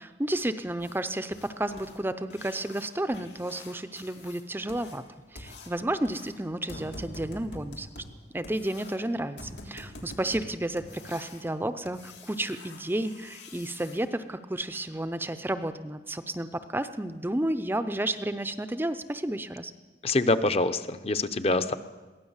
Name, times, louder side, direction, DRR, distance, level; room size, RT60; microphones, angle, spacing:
voice 1, 0.0-5.0 5.3-7.9 8.3-19.7, right 1 dB, 10° right, 11 dB, 0.6 m, -32 dB
sound 1, 0.8-14.0 16.3-16.4 16.8-16.9 17.4-17.5 18.0-18.1 18.5-18.7 19.1-19.2 19.6-19.7, left 2 dB, 90° left, 3.2 m, -46 dB
voice 2, 20.0-21.7, left 2 dB, 35° left, 12 dB, 0.8 m, -25 dB
22.0 x 16.0 x 7.3 m, 1.2 s
head